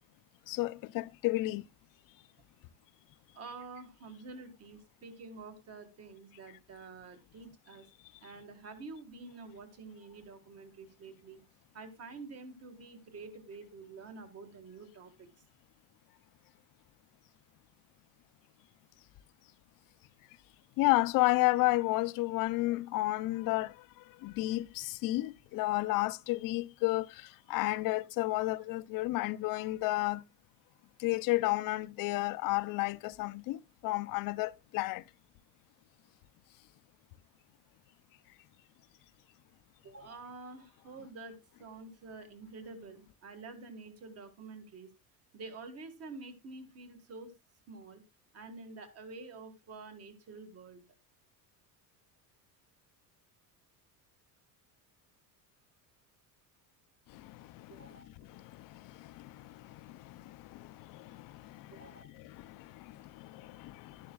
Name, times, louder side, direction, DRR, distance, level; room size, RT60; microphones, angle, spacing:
voice 1, 0.5-1.7 20.8-30.2 31.0-35.0 57.1-64.1, left 19 dB, 50° left, 0.5 m, -32 dB
voice 2, 3.3-7.9 8.2-11.4 11.7-15.3 39.8-44.9 45.3-47.3 47.7-48.0 48.3-50.8 57.7-58.1 61.7-62.1, right 3 dB, 35° right, 1.8 m, -48 dB
11.5 x 11.0 x 2.3 m
cardioid pair, 160°, 43 cm